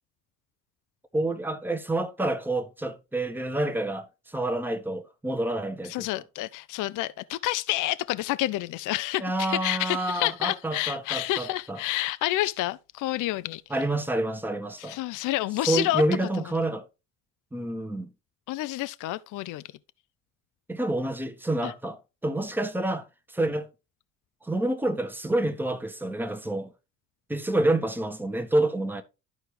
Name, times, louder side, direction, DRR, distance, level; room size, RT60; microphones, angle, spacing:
voice 1, 1.1-6.1 9.2-11.8 13.7-15.0 15.7-16.9 17.5-18.1 20.7-23.7 24.4-26.7 27.3-29.0, right 1 dB, 5° right, 1.1 m, -28 dB
voice 2, 5.9-13.6 14.8-16.0 18.5-19.6 21.6-21.7, left 16 dB, 55° left, 0.5 m, -29 dB
12.0 x 4.5 x 3.2 m
supercardioid pair, 70°, 37 cm